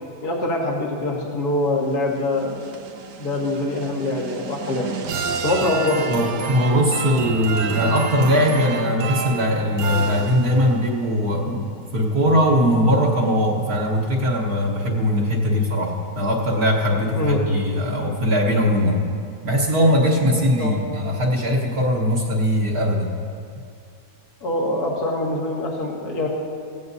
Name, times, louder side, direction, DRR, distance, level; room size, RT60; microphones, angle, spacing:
voice 1, 0.2-2.6 3.2-4.9 5.4-6.2 17.2-17.4 20.6-20.8 24.4-26.3, left 2 dB, 60° left, -2 dB, 2.3 m, -24 dB
sound 1, 1.9-10.8, right 5 dB, 75° right, 1.4 m, -30 dB
voice 2, 6.1-19.0 19.4-23.2, equal, 60° right, -4 dB, 1.7 m, -20 dB
16.5 x 16.0 x 2.7 m, 2.3 s
omnidirectional pair, 1.9 m